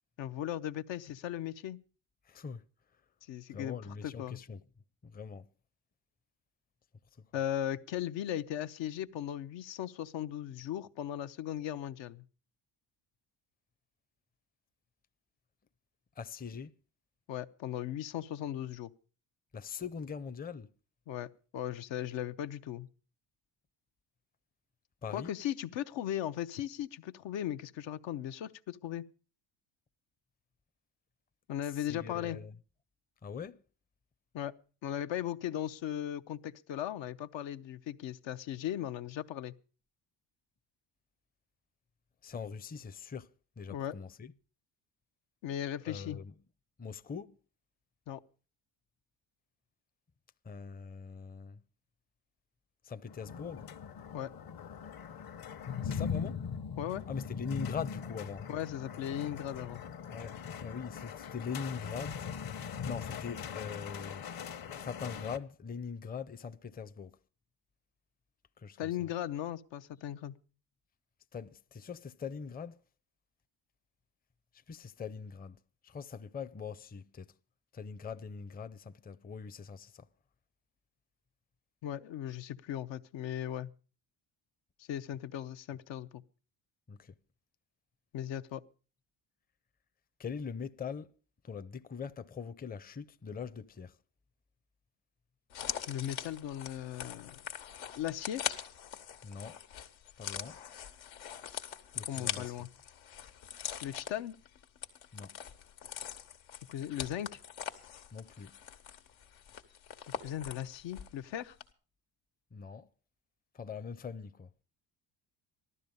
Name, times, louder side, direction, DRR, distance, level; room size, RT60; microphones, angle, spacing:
voice 1, 0.2-1.8 3.3-3.8 4.0-4.4 7.3-12.2 17.3-18.9 21.1-22.9 25.1-29.0 31.5-32.4 34.3-34.5 34.8-39.5 43.7-44.0 45.4-46.2 48.1-48.2 54.1-54.3 56.8-57.1 58.5-59.8 68.8-70.3 81.8-83.7 84.8-86.2 88.1-88.6 95.9-97.4 97.9-98.4 102.1-102.7 103.8-104.4 106.7-107.4 110.2-111.5, left 11 dB, 70° left, 0.8 m, -37 dB
voice 2, 2.3-2.6 3.5-4.6 5.0-5.5 16.2-16.7 19.5-20.7 25.0-25.3 31.9-32.6 33.2-33.6 42.2-44.3 45.9-46.3 46.8-47.4 50.4-51.6 52.8-53.7 55.8-56.4 57.1-58.5 60.1-62.3 62.9-64.3 64.8-67.2 68.6-69.1 71.3-72.8 74.7-77.3 77.7-80.1 86.9-87.1 90.2-91.1 91.4-94.0 99.2-99.6 100.2-100.6 101.9-102.7 105.1-105.4 108.1-108.6 112.5-112.9 113.5-114.5, left 6 dB, 20° left, 0.6 m, -42 dB
sound 1, 53.1-65.4, left 7 dB, 50° left, 1.2 m, -41 dB
sound 2, 95.5-111.2 111.5-111.6, left 9 dB, 90° left, 1.7 m, -42 dB
15.0 x 12.5 x 5.3 m
cardioid pair, 90°, 46 cm